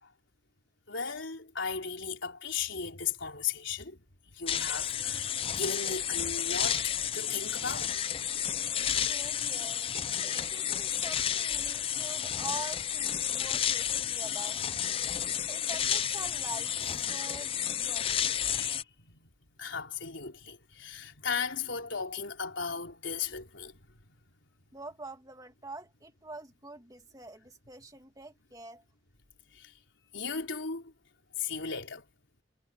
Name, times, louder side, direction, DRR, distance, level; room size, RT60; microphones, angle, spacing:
voice 1, 0.9-4.0 4.3-7.9 10.2-10.4 14.1-14.2 18.4-19.3 19.6-24.1 29.5-29.7 30.1-30.9 31.4-32.1, left 6 dB, 85° left, 3.9 m, -36 dB
sound 1, 4.5-18.8, left 9 dB, 30° left, 0.5 m, -31 dB
voice 2, 9.1-9.8 10.2-14.6 15.0-15.2 15.5-18.5 24.7-28.8, right 2 dB, 20° right, 2.5 m, -45 dB
head